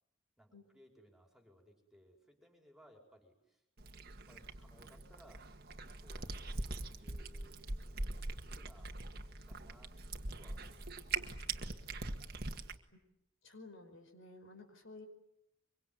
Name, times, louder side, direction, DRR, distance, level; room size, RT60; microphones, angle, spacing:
voice 1, 0.4-3.6 4.3-5.5 6.0-7.6 7.9-9.9 10.4-10.9 11.2-11.9, equal, ahead, 2 dB, 4.8 m, -63 dB
Cat, 3.8-12.8, right 3 dB, 50° right, 1.8 m, -42 dB
voice 2, 13.4-15.1, left 3 dB, 65° left, 6 dB, 5.1 m, -53 dB
24.5 x 24.0 x 9.4 m, 0.83 s
head